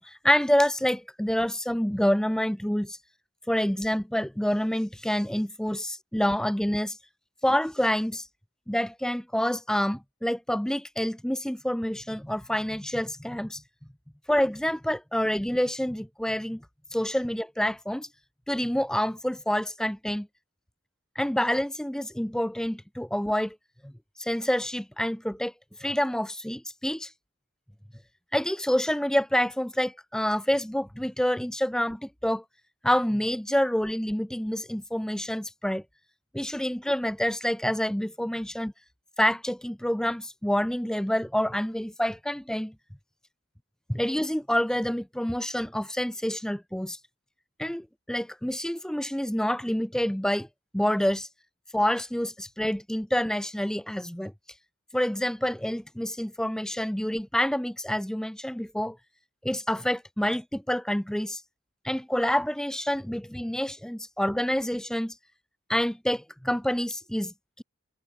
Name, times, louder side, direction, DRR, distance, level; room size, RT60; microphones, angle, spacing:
voice 1, 0.0-3.0 3.5-7.0 7.4-8.3 8.7-13.6 14.3-16.6 16.9-18.1 18.5-20.3 21.2-23.6 23.8-23.9 24.2-25.5 25.8-27.1 28.3-32.4 32.8-35.8 36.3-38.7 39.2-42.7 43.9-47.0 47.6-50.5 50.7-51.3 51.7-54.3 54.9-59.0 59.4-61.4 61.8-65.1 65.7-67.6, equal, 5° left, 0.5 m, -27 dB
head